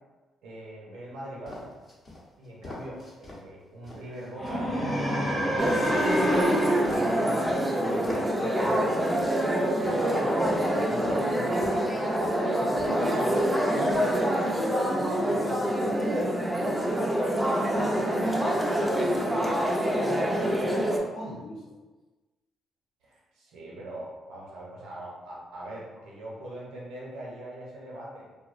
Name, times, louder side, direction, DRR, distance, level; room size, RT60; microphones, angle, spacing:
voice 1, 0.4-1.8 2.4-9.5 10.0-12.0 23.0-28.3, right 1 dB, 90° right, -5 dB, 0.6 m, -41 dB
sound 1, 1.4-3.4 3.8-7.6 8.0-10.0 10.4-11.3 11.6-11.9 12.2-12.4 12.8-13.1 13.3-14.1, left 2 dB, 45° left, 0.7 m, -44 dB
sound 2, 4.3-8.5, equal, 10° left, 0.8 m, -28 dB
sound 3, 5.6-21.0, equal, 10° right, 0.3 m, -26 dB
voice 2, 9.7-10.1 12.2-21.7, equal, 85° left, -12 dB, 0.7 m, -39 dB
2.5 x 2.0 x 2.4 m, 1.2 s
cardioid pair, 90°, 0 cm